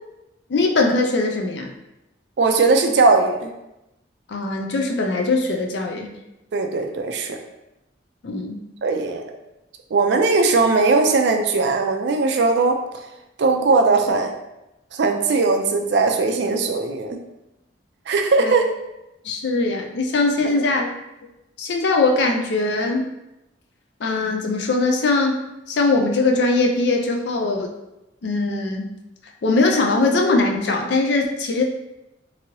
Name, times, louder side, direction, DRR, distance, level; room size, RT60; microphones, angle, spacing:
voice 1, 0.5-1.7 4.3-6.1 8.2-8.6 18.4-18.5 19.2-20.9 21.6-23.0 24.0-25.3 25.7-27.7 28.2-28.9 29.4-31.6, left 3 dB, 60° left, 2 dB, 0.4 m, -21 dB
voice 2, 2.4-3.5 6.5-7.4 8.8-9.4 9.9-12.8 13.4-14.3 14.9-17.2 18.1-18.7 20.4-20.6, right 3 dB, 60° right, 4 dB, 0.4 m, -19 dB
3.0 x 2.7 x 2.7 m, 0.92 s
head